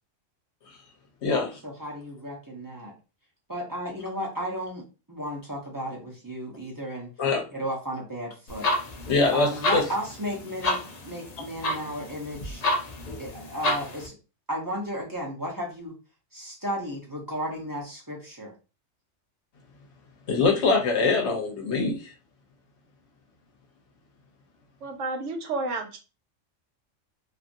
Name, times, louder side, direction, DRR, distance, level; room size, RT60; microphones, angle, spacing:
voice 1, 1.3-2.9 3.5-7.1 7.5-8.7 9.3-12.6 13.2-14.1 14.5-16.0 16.3-18.5, equal, 20° right, 0.7 m, -34 dB
sound 1, 8.5-14.1, left 1 dB, 50° left, 0.5 m, -30 dB
voice 2, 9.1-9.8 20.3-22.0, left 4 dB, 65° left, 1.0 m, -23 dB
voice 3, 24.8-26.0, right 3 dB, 75° right, 0.9 m, -31 dB
2.8 x 2.5 x 2.5 m
omnidirectional pair, 1.3 m